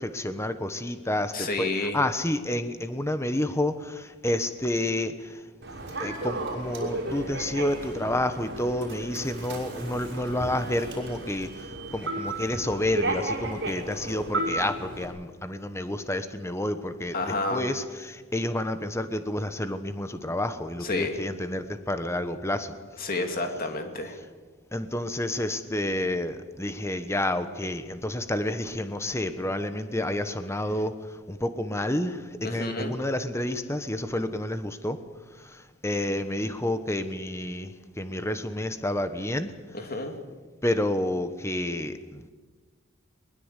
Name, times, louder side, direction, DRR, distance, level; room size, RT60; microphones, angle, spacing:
voice 1, 0.0-5.1 6.0-11.5 11.9-22.7 24.7-30.9 31.3-35.0 35.8-37.7 38.0-39.5 40.6-42.3, left 1 dB, 15° left, 10 dB, 1.2 m, -29 dB
voice 2, 1.3-2.0 17.1-17.7 20.8-21.2 23.0-24.2 32.4-32.9 39.7-40.1, left 2 dB, 45° left, 5 dB, 2.7 m, -30 dB
Human voice / Subway metro underground, 5.6-15.1, right 2 dB, 55° right, 6.0 m, -34 dB
21.5 x 21.0 x 8.3 m, 1.4 s
head